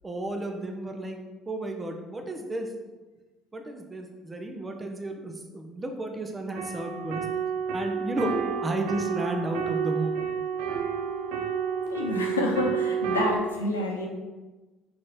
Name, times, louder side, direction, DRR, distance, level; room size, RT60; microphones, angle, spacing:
voice 1, 0.0-1.2 1.5-2.7 3.5-7.3 7.7-8.3 8.6-10.2, right 1 dB, 25° right, 3 dB, 1.0 m, -32 dB
sound 1, 6.6-13.4, right 7 dB, 70° right, 0.8 m, -30 dB
voice 2, 11.9-14.1, left 2 dB, 90° left, 0 dB, 1.0 m, -28 dB
6.3 x 4.4 x 4.3 m, 1.2 s
figure-of-eight pair, 55°, 0 cm